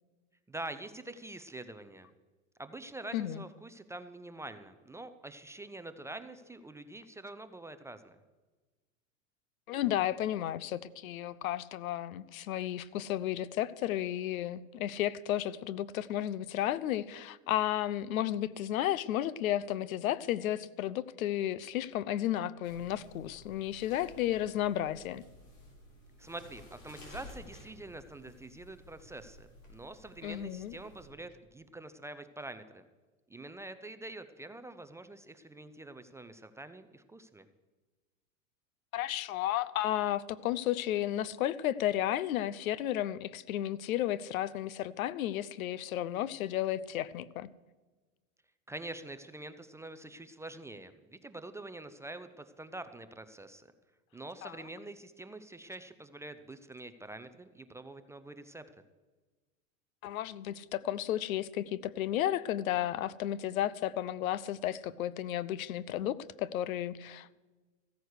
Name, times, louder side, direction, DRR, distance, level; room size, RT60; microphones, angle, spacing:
voice 1, 0.5-2.1 2.6-8.2 26.2-32.8 33.3-37.5 48.7-53.7 54.1-58.6, right 2 dB, 5° right, 10 dB, 0.4 m, -46 dB
voice 2, 3.1-3.4 9.7-25.2 30.2-30.8 38.9-47.5 54.4-54.6 60.0-67.4, left 12 dB, 85° left, 19 dB, 0.7 m, -33 dB
sound 1, 22.6-31.1, left 1 dB, 60° left, 4.8 m, -54 dB
15.0 x 9.1 x 6.5 m, 1.3 s
hypercardioid pair, 115°, 41 cm